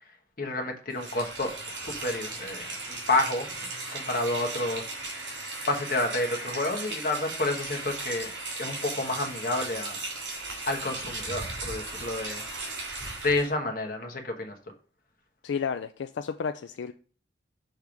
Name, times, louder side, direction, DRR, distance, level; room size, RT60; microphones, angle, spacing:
voice 1, 0.4-3.5 3.9-5.3 5.7-8.3 8.6-10.0 10.7-12.4 13.2-14.5, left 2 dB, 50° left, 3 dB, 1.3 m, -30 dB
Rain, 0.9-13.5, right 3 dB, 85° right, 3.0 m, -37 dB
voice 2, 15.4-16.9, left 6 dB, 80° left, 9 dB, 0.4 m, -32 dB
6.5 x 3.5 x 5.9 m, 0.41 s
head